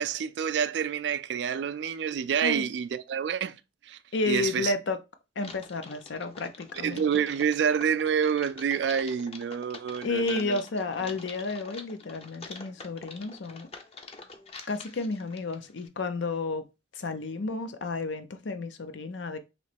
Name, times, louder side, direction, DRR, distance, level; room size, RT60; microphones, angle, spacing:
voice 1, 0.0-3.6 3.8-4.0 4.3-4.7 6.7-10.6, right 7 dB, 65° right, 0.3 m, -28 dB
voice 2, 4.1-5.0 5.4-7.0 10.0-13.7 14.7-16.6 16.9-19.4, left 3 dB, 80° left, 0.6 m, -31 dB
Typing, 5.4-15.9, left 3 dB, 35° left, 0.6 m, -46 dB
3.1 x 3.0 x 4.1 m
head